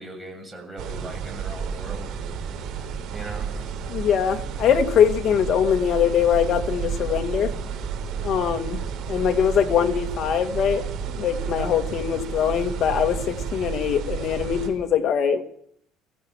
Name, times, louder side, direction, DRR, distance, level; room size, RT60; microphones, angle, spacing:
voice 1, 0.0-2.2 2.8-3.7 11.6-11.8, right 2 dB, 10° right, 7.5 m, -39 dB
sound 1, 0.8-14.7, right 6 dB, 60° right, 6.1 m, -31 dB
voice 2, 3.9-7.5 8.2-8.8 9.1-10.9 11.1-15.4, left 8 dB, 40° left, 2.2 m, -22 dB
23.5 x 15.5 x 7.4 m
cardioid pair, 145°, 0 cm